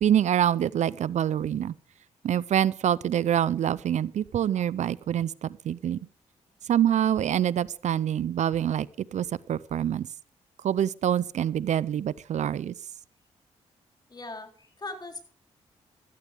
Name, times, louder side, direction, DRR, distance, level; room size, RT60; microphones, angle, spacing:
voice 1, 0.0-1.7 2.2-6.0 6.7-10.1 10.6-12.7, right 10 dB, 65° right, 0.5 m, -26 dB
voice 2, 14.1-15.2, left 2 dB, 30° left, 3.9 m, -39 dB
16.0 x 13.5 x 3.5 m
cardioid pair, 60°, 13 cm